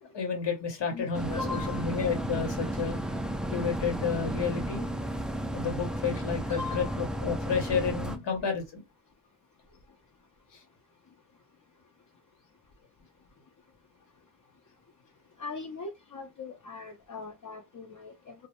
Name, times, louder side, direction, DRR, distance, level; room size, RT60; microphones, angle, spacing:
voice 1, 0.0-3.0 3.5-4.8 5.5-8.8, left 6 dB, 75° left, 0.9 m, -31 dB
voice 2, 0.9-1.9 6.5-7.0 15.4-18.3, left 4 dB, 45° left, 0.6 m, -39 dB
sound 1, 1.1-8.2, right 1 dB, ahead, 0.3 m, -33 dB
2.1 x 2.1 x 2.8 m
cardioid pair, 60°, 43 cm